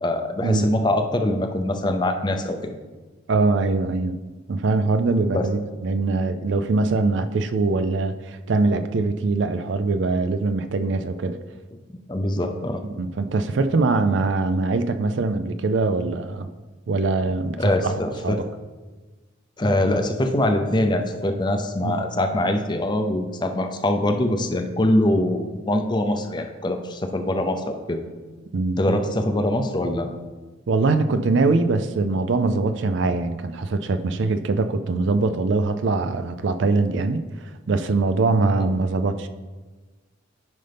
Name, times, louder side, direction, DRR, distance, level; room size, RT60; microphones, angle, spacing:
voice 1, 0.0-2.7 5.3-5.4 12.1-12.8 17.6-18.4 19.6-28.0 28.8-30.1 38.6-38.7, left 1 dB, 20° left, 6 dB, 0.5 m, -23 dB
voice 2, 3.3-4.2 4.5-11.4 12.8-16.5 16.9-18.4 21.8-22.0 28.5-29.0 30.7-39.3, right 3 dB, 65° right, 10 dB, 0.4 m, -22 dB
9.3 x 5.4 x 3.5 m, 1.3 s
head